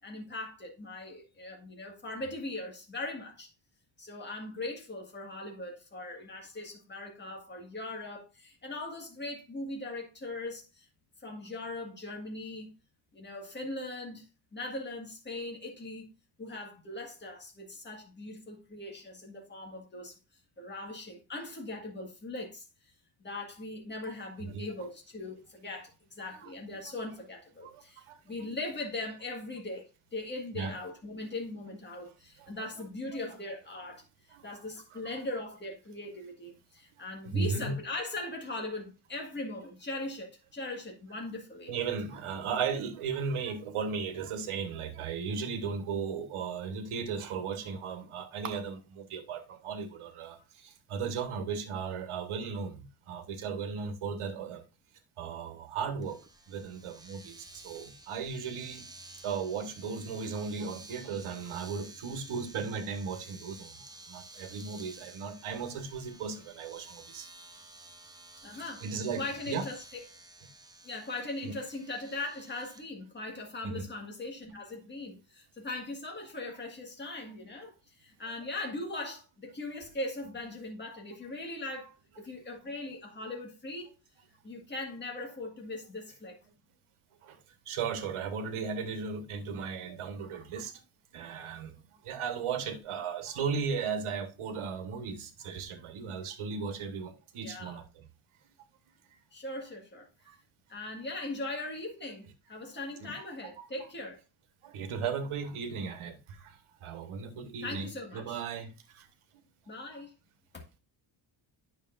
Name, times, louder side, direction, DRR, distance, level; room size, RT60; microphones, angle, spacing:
voice 1, 0.0-3.5 4.0-10.9 11.2-12.7 13.1-14.3 14.5-16.0 16.4-20.2 20.6-22.7 23.2-34.0 34.4-41.7 68.4-68.9 69.2-70.0 70.8-83.9 84.4-86.4 97.4-97.8 99.3-100.1 100.7-104.2 107.6-108.4 109.7-110.1 110.5-110.6, left 2 dB, 20° left, 1.8 m, -40 dB
voice 2, 37.3-37.8 41.7-50.4 50.9-54.6 55.2-56.2 56.5-57.4 57.6-58.8 59.2-63.7 64.1-67.3 68.5-69.2 69.5-69.6 71.4-71.6 73.6-73.9 87.3-87.4 87.7-90.7 91.1-91.7 92.0-97.8 103.0-103.1 103.6-103.7 104.6-106.4 106.8-108.7 108.9-109.0, right 5 dB, 80° right, 1.4 m, -36 dB
Domestic sounds home sounds, 56.0-72.8, right 2 dB, 10° right, 0.6 m, -52 dB
9.2 x 6.6 x 2.5 m
wide cardioid pair, 160°, 50 cm